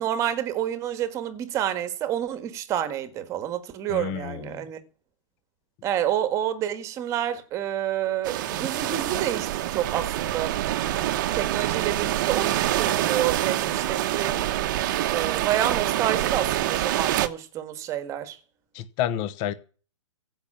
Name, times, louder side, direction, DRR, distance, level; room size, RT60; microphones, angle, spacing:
voice 1, 0.0-4.8 5.8-10.6 11.3-14.4 15.1-18.4, right 11 dB, 15° right, 1.5 m, -29 dB
voice 2, 3.9-4.6 18.7-19.5, left 10 dB, 25° left, 1.0 m, -29 dB
sound 1, 8.2-17.3, right 13 dB, 35° right, 1.0 m, -26 dB
15.5 x 6.0 x 8.7 m
hypercardioid pair, 160°, 17 cm